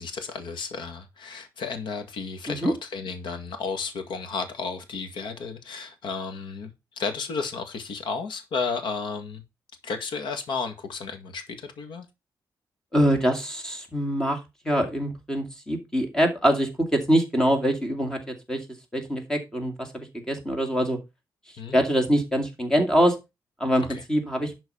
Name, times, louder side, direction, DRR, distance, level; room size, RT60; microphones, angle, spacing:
voice 1, 0.0-9.4 9.8-12.1 21.6-21.8 23.9-24.0, left 5 dB, 80° left, 2.0 m, -33 dB
voice 2, 12.9-14.4 14.6-18.6 18.9-21.0 21.7-23.2 23.6-24.5, equal, 10° left, 2.3 m, -24 dB
11.5 x 4.4 x 5.5 m
wide cardioid pair, 180°, 8 cm